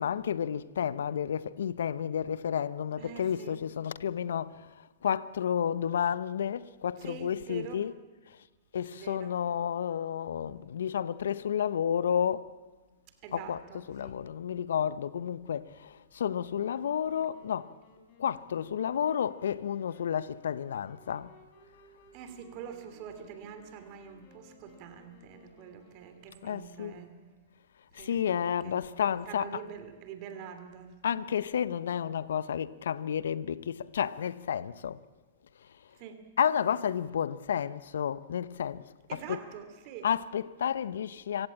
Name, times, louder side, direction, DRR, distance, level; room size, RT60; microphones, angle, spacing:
voice 1, 0.0-8.0 8.3-8.4 8.7-12.5 13.3-17.8 18.2-21.3 26.4-27.0 27.9-29.6 31.0-35.0 36.4-39.4 40.0-41.5, left 8 dB, 70° left, 0.8 m, -31 dB
voice 2, 3.0-3.6 7.0-7.8 8.9-9.3 13.2-14.2 22.1-27.1 27.9-28.8 29.1-30.9 35.9-36.2 39.1-40.1, right 8 dB, 45° right, 3.0 m, -45 dB
Wind instrument woodwind instrument, 16.6-27.5, left 3 dB, 40° left, 6.7 m, -60 dB
25.0 x 16.5 x 8.8 m
hypercardioid pair, 105°, 0 cm